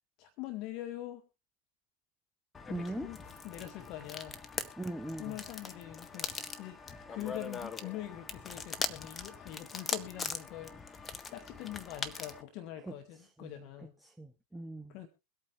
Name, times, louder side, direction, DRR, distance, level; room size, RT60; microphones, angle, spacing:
voice 1, 0.2-1.2 2.7-4.4 5.2-6.8 7.1-14.0 14.9-15.1, left 13 dB, 40° left, 8 dB, 1.3 m, -44 dB
sound 1, 2.5-12.4, left 4 dB, 15° left, 1.1 m, -41 dB
voice 2, 2.7-3.1 4.8-5.4 12.8-12.9 13.4-13.6 14.0-15.0, right 1 dB, 5° right, 8 dB, 0.6 m, -40 dB
23.0 x 8.7 x 3.2 m, 0.28 s
figure-of-eight pair, 90°, 0 cm